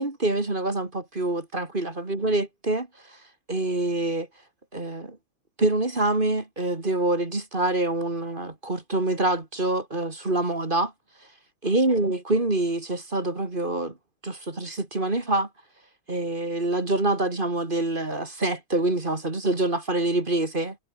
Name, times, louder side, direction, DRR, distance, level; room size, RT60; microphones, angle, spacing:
voice 1, 0.0-2.9 3.5-4.3 4.7-5.2 5.6-10.9 11.6-14.0 14.2-15.5 16.1-20.8, right 2 dB, 25° right, 2.6 m, -26 dB
omnidirectional pair, 2.1 m